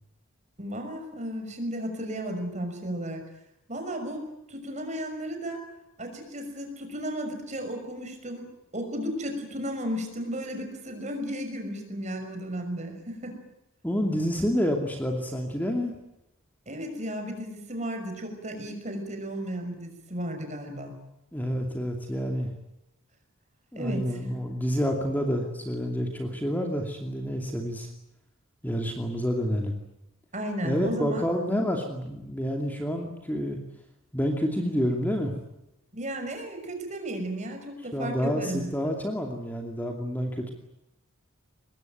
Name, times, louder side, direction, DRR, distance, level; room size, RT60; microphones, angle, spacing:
voice 1, 0.6-3.2 3.7-5.7 6.0-8.5 8.7-13.4 16.7-21.0 23.8-24.1 30.3-31.2 35.9-38.9, equal, 30° right, 5 dB, 6.0 m, -34 dB
voice 2, 13.8-15.9 21.3-22.5 23.7-27.9 28.6-29.8 30.6-33.6 34.1-35.3 37.9-40.5, equal, 10° left, 2 dB, 2.6 m, -28 dB
24.5 x 21.0 x 9.3 m, 0.86 s
head